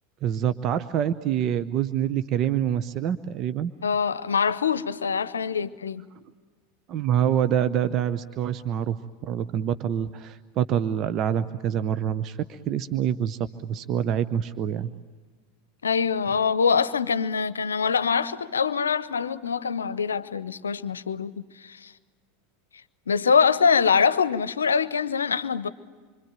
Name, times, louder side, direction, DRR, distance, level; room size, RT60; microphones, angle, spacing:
voice 1, 0.2-3.7 6.9-9.0 9.2-14.9, right 9 dB, 40° right, 0.8 m, -26 dB
voice 2, 3.8-6.1 15.8-21.3 21.6-21.9 23.1-25.7, left 6 dB, 80° left, 0.7 m, -24 dB
26.5 x 25.0 x 8.9 m
figure-of-eight pair, 85°, 0 cm